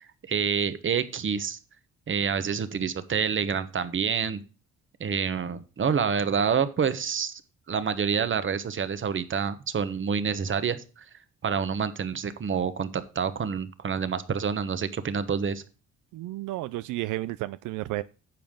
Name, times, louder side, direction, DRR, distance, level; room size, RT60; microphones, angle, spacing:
voice 1, 0.0-1.6 2.1-4.4 5.0-7.4 7.7-11.0 11.4-12.9 13.1-15.6, right 6 dB, 40° right, 13 dB, 1.2 m, -27 dB
voice 2, 16.1-18.0, right 17 dB, 85° right, 15 dB, 0.5 m, -32 dB
10.5 x 7.0 x 3.8 m, 0.35 s
cardioid pair, 90°, 30 cm